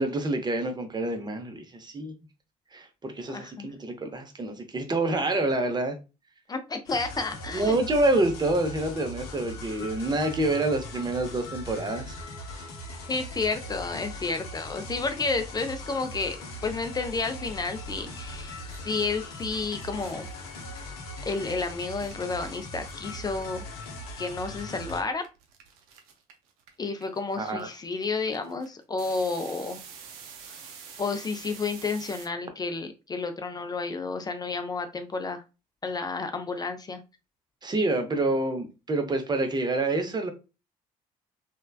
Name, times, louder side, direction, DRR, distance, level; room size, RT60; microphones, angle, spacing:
voice 1, 0.0-2.1 2.7-6.0 7.5-12.2 27.4-27.7 37.6-40.3, right 2 dB, 20° right, 0.6 m, -27 dB
voice 2, 3.3-3.7 6.5-7.8 13.1-16.4 16.6-18.6 18.8-20.3 21.2-23.7 24.2-25.2 26.8-29.8 30.5-30.6 31.0-35.4 35.8-37.0, left 4 dB, 20° left, 0.4 m, -31 dB
sound 1, 6.9-25.0, left 1 dB, 70° left, 0.6 m, -40 dB
sound 2, 18.1-18.2 18.3-23.8 24.1-32.2, right 7 dB, 65° right, 0.5 m, -48 dB
3.2 x 2.1 x 2.2 m
figure-of-eight pair, 45°, 19 cm